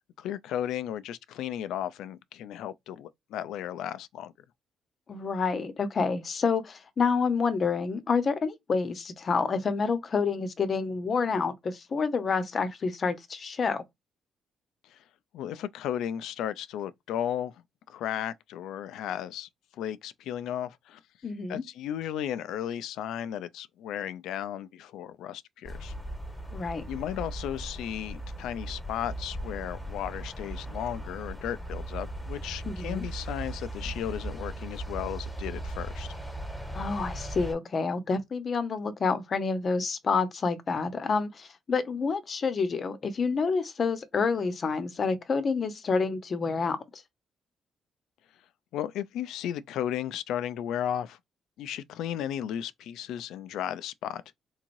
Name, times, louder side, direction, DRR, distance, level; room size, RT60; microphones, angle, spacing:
voice 1, 0.0-4.3 14.9-15.0 15.3-17.5 17.9-19.5 19.8-21.0 21.5-25.9 26.9-36.1 48.7-51.2 51.6-54.4, left 10 dB, 85° left, 0.3 m, -35 dB
voice 2, 5.1-13.8 21.2-21.6 26.5-26.8 32.6-33.0 36.7-47.0, left 5 dB, 45° left, 0.8 m, -28 dB
sound 1, 25.6-37.5, right 1 dB, 5° left, 1.3 m, -38 dB
3.6 x 3.1 x 2.5 m
cardioid pair, 90°, 0 cm